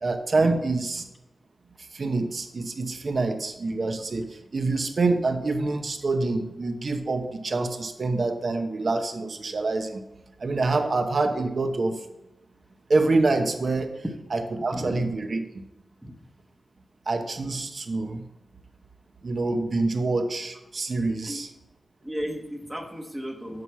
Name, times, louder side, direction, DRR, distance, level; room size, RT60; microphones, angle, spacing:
voice 1, 0.0-1.1 1.9-10.0 10.4-12.1 12.9-13.9 14.3-15.6 17.1-18.3 19.2-21.5, right 3 dB, 50° right, 6 dB, 1.0 m, -26 dB
voice 2, 22.0-23.6, equal, 10° right, 3 dB, 1.1 m, -34 dB
7.9 x 5.6 x 6.1 m, 0.95 s
wide cardioid pair, 95°, 0 cm